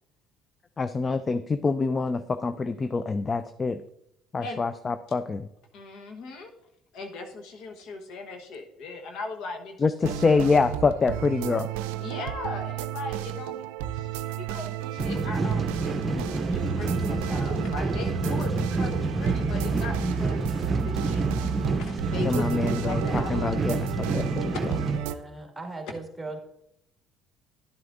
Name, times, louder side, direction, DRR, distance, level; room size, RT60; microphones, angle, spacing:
voice 1, 0.8-3.8 4.3-5.5 9.8-11.7 16.1-16.4 22.2-24.6, left 4 dB, 30° left, 12 dB, 0.4 m, -26 dB
voice 2, 5.7-6.5 6.9-10.7 12.0-13.6 13.9-20.5 20.8-23.8 24.5-24.6, left 3 dB, 70° left, 4 dB, 1.1 m, -39 dB
sound 1, 10.0-25.2, right 8 dB, 85° right, 0.4 m, -33 dB
sound 2, 15.0-25.0, right 3 dB, 30° right, 0.8 m, -28 dB
voice 3, 25.0-26.4, right 2 dB, 10° right, 2 dB, 2.0 m, -38 dB
11.5 x 7.8 x 2.6 m, 0.80 s
supercardioid pair, 75°, 0 cm